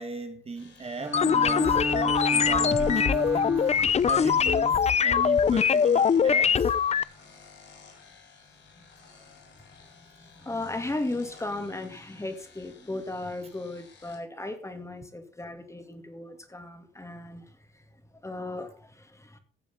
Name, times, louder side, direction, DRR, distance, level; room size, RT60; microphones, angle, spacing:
voice 1, 0.0-6.8, right 3 dB, 30° right, 1.6 m, -38 dB
sound 1, 0.5-14.2, left 5 dB, 65° left, 7.0 m, -54 dB
Bowed string instrument, 1.0-4.0, right 2 dB, 10° right, 0.9 m, -32 dB
sound 2, 1.1-7.0, left 7 dB, 35° left, 0.5 m, -22 dB
voice 2, 8.8-9.1 9.8-19.4, left 2 dB, 15° left, 2.5 m, -37 dB
15.5 x 7.0 x 5.6 m
cardioid pair, 90°, 20 cm